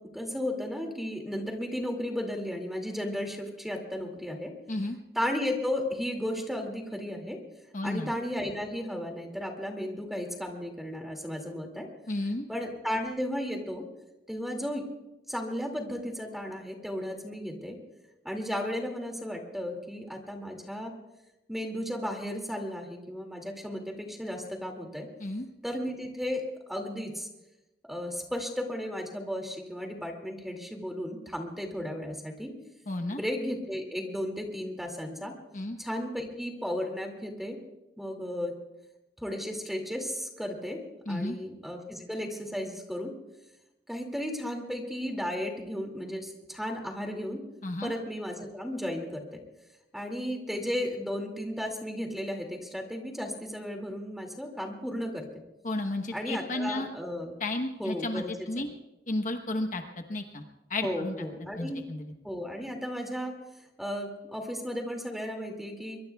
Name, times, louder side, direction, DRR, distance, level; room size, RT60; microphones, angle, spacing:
voice 1, 0.1-4.5 5.1-7.4 7.8-11.9 12.5-13.8 14.3-14.9 15.3-17.8 18.2-20.9 21.5-25.1 25.6-27.3 27.9-32.5 33.1-35.3 35.8-37.6 38.0-38.5 39.2-40.8 41.1-43.1 43.9-47.4 47.8-49.4 49.9-55.2 56.1-57.3 57.8-58.7 60.8-61.8 62.2-63.3 63.8-66.0, equal, ahead, 2 dB, 2.3 m, -34 dB
voice 2, 7.7-8.1 12.1-12.4 25.2-25.5 32.9-33.2 35.5-35.8 41.1-41.4 47.6-47.9 55.6-56.9 57.4-58.7 59.1-60.4 60.7-61.3 61.6-62.0, left 2 dB, 45° left, 5 dB, 1.0 m, -32 dB
23.0 x 23.0 x 2.3 m, 0.97 s
head